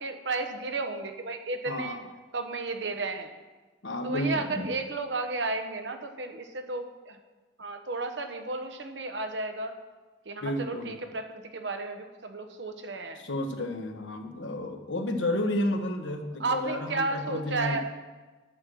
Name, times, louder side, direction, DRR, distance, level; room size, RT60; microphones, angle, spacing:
voice 1, 0.0-2.0 2.3-3.3 4.0-7.2 7.6-9.7 10.2-13.3 16.4-18.0, right 3 dB, 70° right, 6 dB, 1.1 m, -33 dB
voice 2, 1.7-2.0 3.8-4.7 10.4-10.9 13.2-17.8, left 1 dB, 85° left, 5 dB, 1.2 m, -31 dB
10.5 x 7.4 x 6.3 m, 1.3 s
head